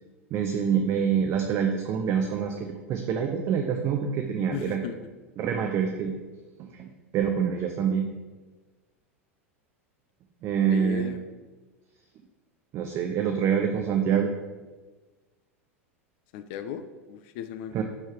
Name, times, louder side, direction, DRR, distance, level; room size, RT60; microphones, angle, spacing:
voice 1, 0.3-4.8 5.4-6.1 6.7-6.9 7.1-8.1 10.4-11.1 12.7-14.3 17.7-17.8, right 7 dB, 35° right, 4 dB, 0.5 m, -26 dB
voice 2, 4.5-5.0 10.7-11.2 16.3-17.8, left 9 dB, 45° left, 10 dB, 0.4 m, -36 dB
6.3 x 3.3 x 5.8 m, 1.3 s
figure-of-eight pair, 85°, 7 cm